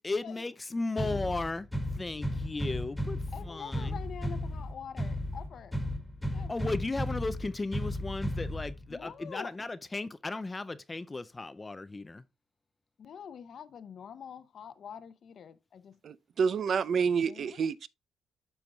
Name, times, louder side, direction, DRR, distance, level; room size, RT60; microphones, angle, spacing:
voice 1, 0.0-1.7 1.9-4.0 6.5-12.2, left 3 dB, 20° left, 0.4 m, -35 dB
sound 1, 1.0-9.0, left 1 dB, 5° left, 1.8 m, -35 dB
voice 2, 3.3-5.8 6.3-6.7 8.9-9.5 13.0-16.0 17.1-17.6, left 7 dB, 60° left, 0.7 m, -45 dB
voice 3, 16.0-17.9, right 6 dB, 55° right, 0.5 m, -28 dB
12.5 x 4.5 x 2.3 m
cardioid pair, 90°, 0 cm